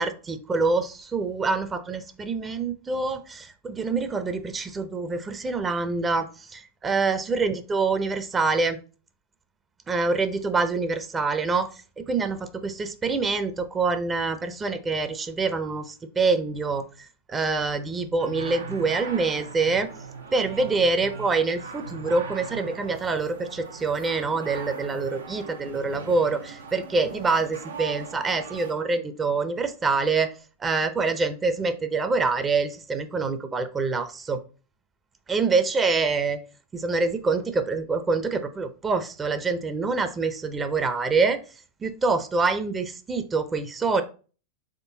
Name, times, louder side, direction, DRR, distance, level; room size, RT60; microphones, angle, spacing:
voice 1, 0.0-8.8 9.9-19.9 20.3-30.3 30.6-34.4 35.3-36.4 36.7-41.4 41.8-44.0, right 4 dB, 20° right, 9 dB, 0.5 m, -26 dB
sound 1, 18.2-28.7, right 5 dB, 90° right, 0.7 m, -40 dB
4.0 x 3.6 x 2.6 m, 0.36 s
hypercardioid pair, 95°, 0 cm